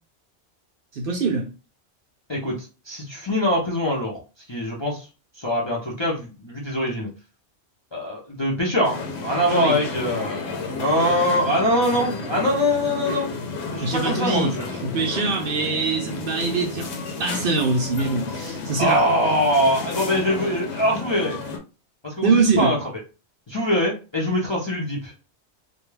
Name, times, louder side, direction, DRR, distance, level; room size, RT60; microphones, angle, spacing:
voice 1, 0.9-1.5 9.5-9.8 13.8-14.5 14.8-16.9 17.2-19.1 22.2-22.7, right 4 dB, 60° right, 0.6 m, -23 dB
voice 2, 2.3-4.2 4.5-5.1 5.4-7.1 7.9-13.3 13.7-14.7 18.8-21.4 22.0-22.8 23.5-25.1, equal, 35° left, 0.5 m, -23 dB
sound 1, 8.8-21.6, left 3 dB, 75° left, 0.8 m, -32 dB
2.2 x 2.2 x 3.1 m
omnidirectional pair, 1.2 m